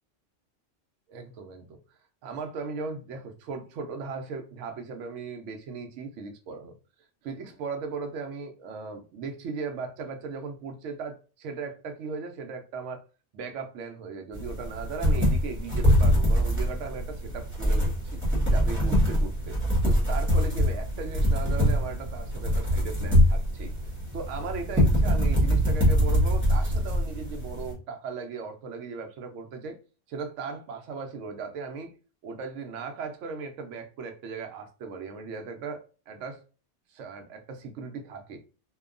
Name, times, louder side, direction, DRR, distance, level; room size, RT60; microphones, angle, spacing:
voice 1, 1.1-1.8 2.2-6.8 7.2-13.0 13.3-18.2 18.5-19.6 19.8-23.7 24.1-29.8 30.1-31.9 32.2-36.4 36.9-38.4, right 5 dB, 80° right, 0.9 m, -37 dB
sound 1, 14.3-27.7, equal, 10° right, 1.0 m, -24 dB
2.8 x 2.2 x 2.4 m
omnidirectional pair, 1.2 m